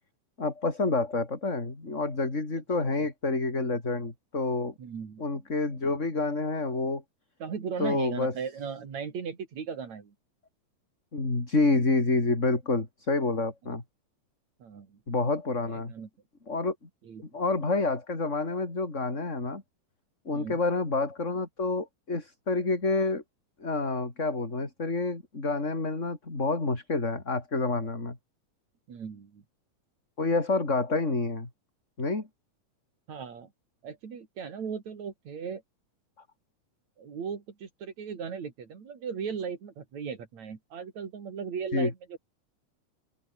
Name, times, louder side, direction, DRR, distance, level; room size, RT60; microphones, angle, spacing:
voice 1, 0.4-4.7 5.2-7.0 7.8-8.3 11.1-13.8 15.1-15.9 16.5-16.7 17.3-19.6 20.3-23.2 23.6-28.2 30.2-31.5 32.0-32.3 41.7-41.9, left 3 dB, 20° left, 4.2 m, -28 dB
voice 2, 4.8-5.3 7.4-10.1 14.6-15.0 15.7-16.1 17.0-17.2 20.3-20.6 28.9-29.4 33.1-33.5 33.8-35.6 37.0-42.2, right 6 dB, 60° right, 4.4 m, -37 dB
open air
omnidirectional pair, 3.5 m